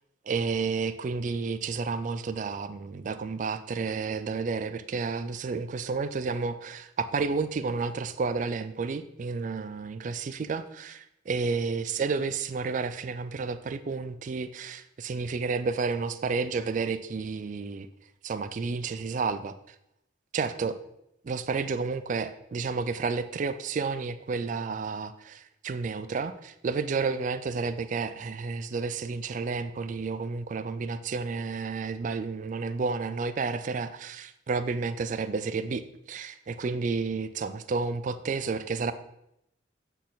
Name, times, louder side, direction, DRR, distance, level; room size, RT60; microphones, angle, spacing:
voice 1, 0.3-17.9 18.2-19.8 20.3-20.8 21.2-35.8 36.1-38.9, right 4 dB, 45° right, 12 dB, 0.3 m, -31 dB
8.3 x 4.1 x 3.9 m, 0.81 s
head